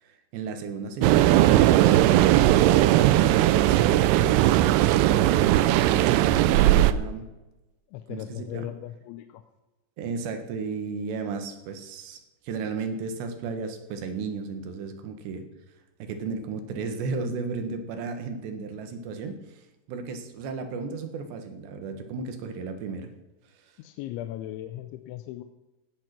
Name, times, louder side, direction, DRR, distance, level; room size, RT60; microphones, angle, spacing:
voice 1, 0.0-4.4 5.3-7.3 8.1-8.7 10.0-12.2 12.5-15.5 16.0-19.4 19.9-23.1, right 4 dB, 70° right, 7 dB, 3.6 m, -34 dB
sound 1, 1.0-6.9, right 14 dB, 85° right, 2.4 m, -19 dB
voice 2, 7.9-9.4 23.8-25.4, left 13 dB, 85° left, 9 dB, 3.1 m, -37 dB
17.5 x 9.3 x 6.1 m, 1.1 s
omnidirectional pair, 5.4 m